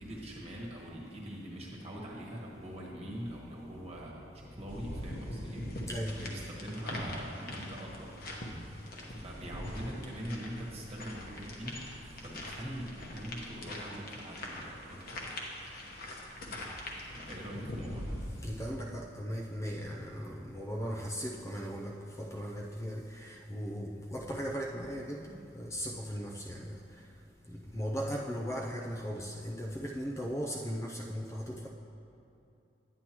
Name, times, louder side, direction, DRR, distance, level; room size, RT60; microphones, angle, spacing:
voice 1, 0.0-5.6 6.2-8.2 9.2-15.3 17.1-18.2, equal, 35° right, -3 dB, 1.5 m, -43 dB
sound 1, 4.7-18.6, left 1 dB, 55° left, 1.1 m, -42 dB
voice 2, 5.9-6.5 8.3-8.8 10.9-11.0 11.3-11.5 18.4-27.1 27.5-31.7, equal, 15° left, -1 dB, 0.5 m, -38 dB
9.7 x 9.4 x 3.0 m, 2.8 s
head